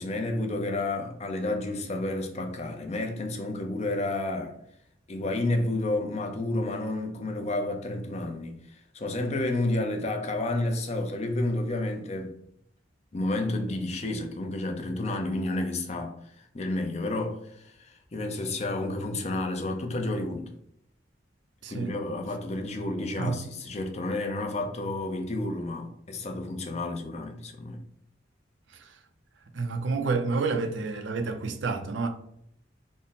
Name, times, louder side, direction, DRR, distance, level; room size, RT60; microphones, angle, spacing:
voice 1, 0.0-4.6 5.1-12.4 13.1-20.5 21.7-27.8, left 2 dB, 35° left, 0.5 m, -31 dB
voice 2, 21.6-22.0 23.2-23.5 28.7-29.0 29.5-32.1, right 4 dB, 80° right, 0.5 m, -29 dB
3.5 x 2.1 x 4.0 m
head